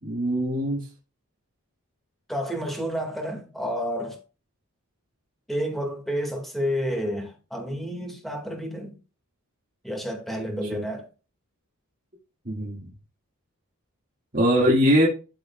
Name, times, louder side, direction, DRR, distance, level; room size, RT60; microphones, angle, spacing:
voice 1, 0.0-0.9 10.7-10.8 12.5-12.9 14.3-15.1, equal, 40° right, 2.0 m, -22 dB
voice 2, 2.3-4.2 5.5-8.9 9.8-11.1, equal, ahead, 2.0 m, -30 dB
13.0 x 4.9 x 2.4 m
head